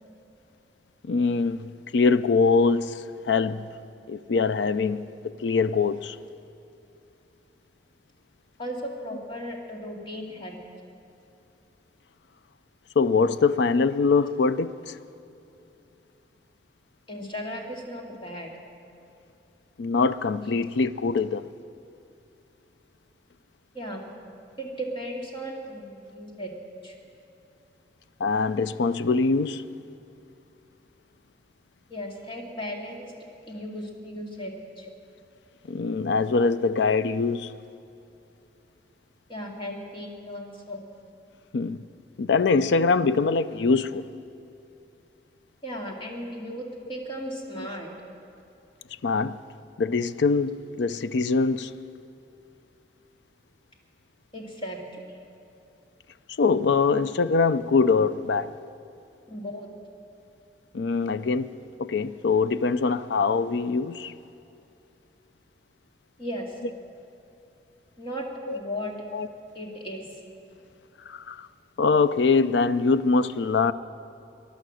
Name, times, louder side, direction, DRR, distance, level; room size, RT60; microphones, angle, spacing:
voice 1, 1.0-3.7 4.1-6.2 13.0-15.0 19.8-21.4 28.2-29.6 35.7-37.5 41.5-41.8 42.2-44.1 46.5-46.6 47.6-47.7 49.0-49.4 49.8-51.8 56.4-58.5 60.7-61.5 61.8-64.1 68.5-68.6 69.1-69.3 71.1-71.5 71.8-73.7, left 4 dB, 85° left, 0.5 m, -23 dB
voice 2, 8.6-10.6 17.1-18.5 23.7-24.0 24.6-26.5 26.8-26.9 31.9-33.1 33.4-34.9 39.3-40.9 45.6-46.6 46.9-47.9 54.3-55.0 59.3-59.7 66.2-66.5 68.0-68.2 68.5-68.9 69.5-70.1, equal, 30° left, 2.2 m, -36 dB
20.0 x 11.5 x 6.3 m
head